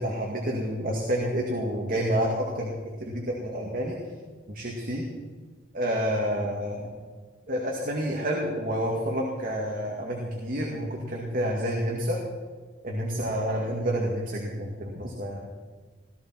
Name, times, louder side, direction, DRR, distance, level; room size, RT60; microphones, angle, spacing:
voice 1, 0.0-2.7 3.0-4.0 4.5-5.1 5.7-6.9 7.5-12.2 12.8-15.4, equal, 50° right, -1 dB, 2.3 m, -29 dB
18.5 x 14.5 x 4.6 m, 1.4 s
head